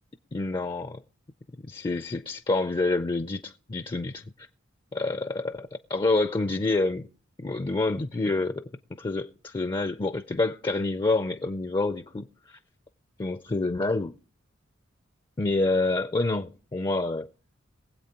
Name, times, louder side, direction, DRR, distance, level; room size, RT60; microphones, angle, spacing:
voice 1, 0.3-1.0 1.6-4.2 4.9-7.0 7.4-8.7 9.0-12.6 13.2-14.1 15.4-17.3, left 2 dB, 25° left, 0.4 m, -27 dB
22.5 x 8.1 x 2.9 m
head